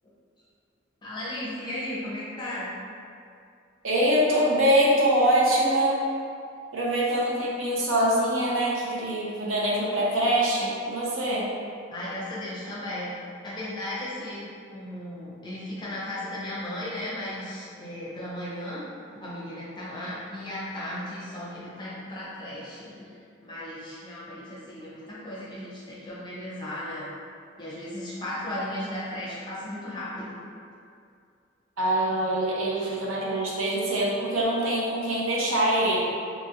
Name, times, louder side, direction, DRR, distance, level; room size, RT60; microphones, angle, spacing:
voice 1, 1.0-2.7 7.7-7.8 11.9-13.1 13.4-14.4 14.7-18.8 19.2-23.1 23.4-27.1 27.6-30.4 32.7-33.0, left 1 dB, 20° left, -8 dB, 0.6 m, -35 dB
voice 2, 3.8-6.0 6.7-11.5 31.8-36.0, right 1 dB, 80° right, -5 dB, 0.6 m, -24 dB
2.8 x 2.4 x 2.8 m, 2.4 s
head